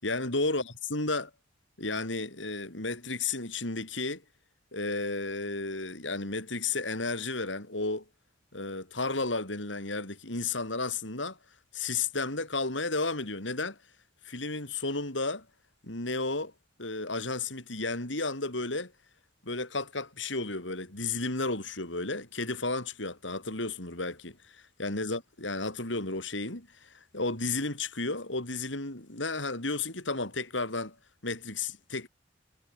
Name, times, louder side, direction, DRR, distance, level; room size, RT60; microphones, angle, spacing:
voice 1, 0.0-1.3 1.8-4.2 4.7-8.0 8.5-11.4 11.7-13.8 14.2-15.5 15.8-16.5 16.8-18.9 19.4-31.0 31.2-32.1, left 3 dB, 80° left, 5.9 m, -33 dB
head